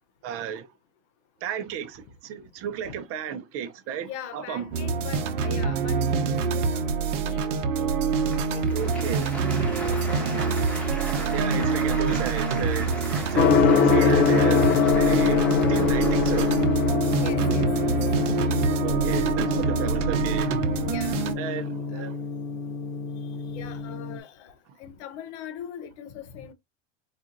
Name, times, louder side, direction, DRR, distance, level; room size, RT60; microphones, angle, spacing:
voice 1, 0.2-0.7 1.4-4.6 8.7-9.4 10.4-10.5 11.3-16.6 18.8-20.9 21.4-22.2, right 8 dB, 35° right, 0.7 m, -33 dB
voice 2, 4.0-6.0 6.5-6.9 7.2-7.4 7.8-8.0 8.5-9.3 9.8-10.4 10.8-10.9 11.9-12.0 12.8-12.9 14.9-15.1 17.2-18.0 19.4-19.6 20.9-21.3 21.9-22.1 23.5-24.5 24.8-26.5, left 8 dB, 60° left, 0.8 m, -41 dB
sound 1, 4.7-21.4, right 5 dB, 70° right, 0.8 m, -25 dB
Applause, 8.1-18.7, left 1 dB, 5° left, 1.1 m, -38 dB
Gong, 13.4-24.2, left 6 dB, 35° left, 0.5 m, -24 dB
4.3 x 2.5 x 2.5 m
hypercardioid pair, 115°, 38 cm